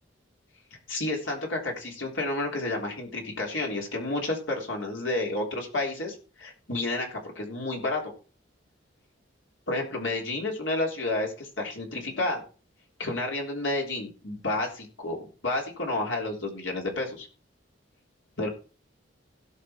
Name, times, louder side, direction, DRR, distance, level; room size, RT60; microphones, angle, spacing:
voice 1, 0.9-8.0 9.7-12.4 13.0-17.3 18.4-18.5, left 2 dB, 80° left, 0 dB, 3.5 m, -30 dB
17.0 x 5.9 x 4.4 m, 0.36 s
head